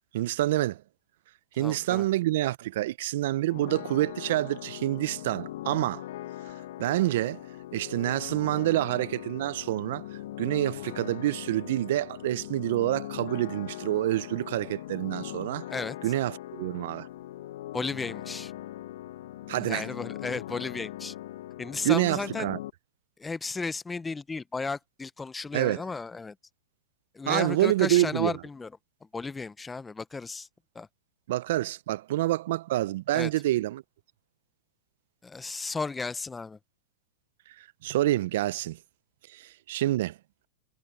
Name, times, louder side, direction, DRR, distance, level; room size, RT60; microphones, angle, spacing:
voice 1, 0.1-0.8 1.6-6.0 6.8-7.4 7.7-10.0 10.4-15.7 16.0-17.1 19.5-19.9 21.8-22.6 25.5-25.8 27.3-28.4 31.3-33.8 37.8-38.8 39.3-40.1, right 15 dB, 65° right, 0.6 m, -27 dB
voice 2, 1.6-2.0 15.7-16.0 17.7-18.5 19.6-21.1 21.6-22.5 23.2-26.3 27.1-28.7 29.1-30.5 30.7-30.9 33.1-33.3 35.2-36.6, left 4 dB, 10° left, 0.8 m, -34 dB
sound 1, 3.5-22.7, left 14 dB, 70° left, 1.0 m, -40 dB
hypercardioid pair, 115°, 0 cm